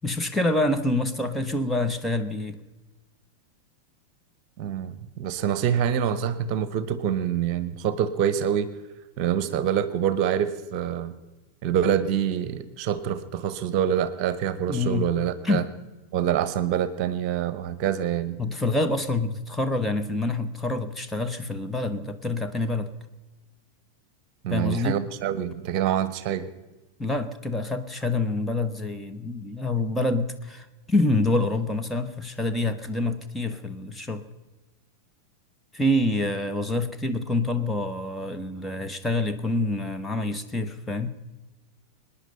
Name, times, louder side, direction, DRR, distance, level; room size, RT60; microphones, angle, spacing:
voice 1, 0.0-2.6 14.7-15.1 15.4-15.7 18.4-22.9 24.5-25.0 27.0-34.2 35.7-41.1, left 2 dB, 10° left, 6 dB, 1.2 m, -26 dB
voice 2, 4.6-8.7 9.2-11.1 11.6-15.6 16.1-18.4 24.4-26.5, right 9 dB, 45° right, 14 dB, 1.1 m, -26 dB
25.5 x 10.0 x 5.6 m, 1.1 s
figure-of-eight pair, 90°, 0 cm